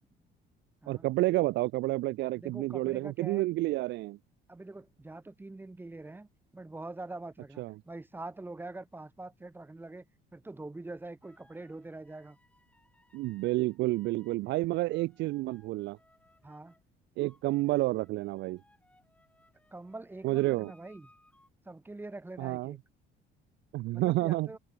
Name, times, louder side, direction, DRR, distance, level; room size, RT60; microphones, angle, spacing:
voice 1, 0.9-4.2 7.6-7.7 13.1-16.0 17.2-18.6 20.2-20.7 22.4-22.8 23.7-24.5, right 19 dB, 65° right, 0.5 m, -30 dB
voice 2, 2.3-3.5 4.5-12.4 16.4-16.7 19.7-21.1 21.7-22.8 23.9-24.6, right 2 dB, 10° right, 3.6 m, -44 dB
sound 1, 11.2-16.8 17.2-21.5, left 1 dB, 5° left, 8.0 m, -66 dB
cardioid pair, 145°, 20 cm